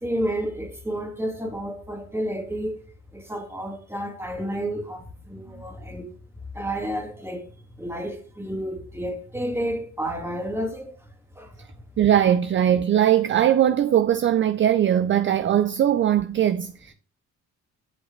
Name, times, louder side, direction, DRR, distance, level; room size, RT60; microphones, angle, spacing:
voice 1, 0.0-2.8 3.1-6.1 6.5-7.5 7.8-10.9 11.4-11.7, equal, 10° right, 1.9 m, -30 dB
voice 2, 12.0-16.9, right 10 dB, 40° right, 0.4 m, -20 dB
8.1 x 6.3 x 3.2 m
cardioid pair, 90°, 30 cm